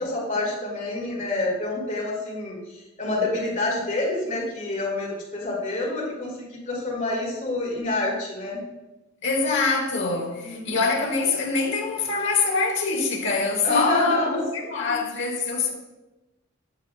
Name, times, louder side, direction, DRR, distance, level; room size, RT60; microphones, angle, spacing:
voice 1, 0.0-2.6 3.0-8.6 10.4-10.8 13.6-14.9, left 2 dB, 40° left, 2.1 m, -28 dB
voice 2, 9.2-15.7, left 4 dB, 65° left, 1.1 m, -24 dB
8.2 x 7.4 x 2.3 m
head